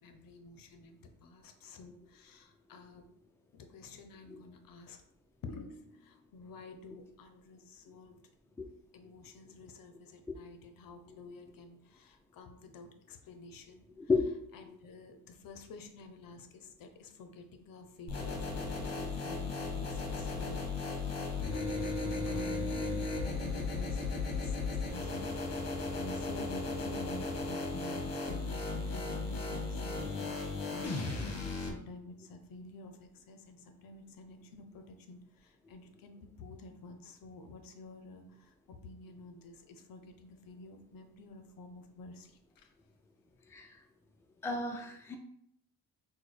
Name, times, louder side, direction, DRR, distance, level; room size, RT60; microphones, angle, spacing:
voice 1, 0.0-3.1 3.5-5.0 5.4-8.2 8.9-13.8 14.5-42.7, left 3 dB, 60° left, 6 dB, 0.6 m, -50 dB
voice 2, 14.0-14.8 43.5-43.8 44.4-45.2, left 4 dB, 5° left, 1 dB, 0.5 m, -33 dB
sound 1, 18.1-31.7, left 3 dB, 40° left, 1.0 m, -36 dB
5.9 x 2.2 x 3.2 m, 0.71 s
cardioid pair, 120°, 38 cm